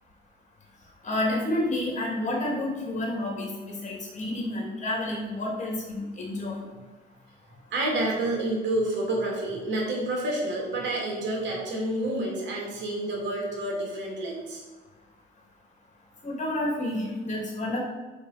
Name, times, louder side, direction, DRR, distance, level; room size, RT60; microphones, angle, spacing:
voice 1, 1.0-6.6 16.2-17.8, left 1 dB, 40° left, 0 dB, 2.4 m, -30 dB
voice 2, 7.7-14.6, right 1 dB, 65° right, -1 dB, 2.6 m, -29 dB
5.5 x 5.3 x 5.8 m, 1.2 s
cardioid pair, 105°, 20 cm